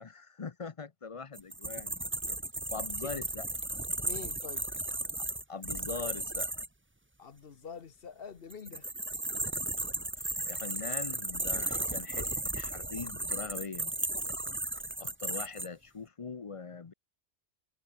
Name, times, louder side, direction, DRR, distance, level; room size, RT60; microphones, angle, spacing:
voice 1, 0.0-2.4 2.7-3.5 5.2-6.6 10.2-13.9 15.0-16.9, left 5 dB, 35° left, 0.7 m, -42 dB
sound 1, 1.3-6.7 8.5-15.7, right 2 dB, 10° right, 0.9 m, -35 dB
voice 2, 4.0-4.6 7.2-8.9, left 6 dB, 55° left, 1.2 m, -45 dB
omnidirectional pair, 1.1 m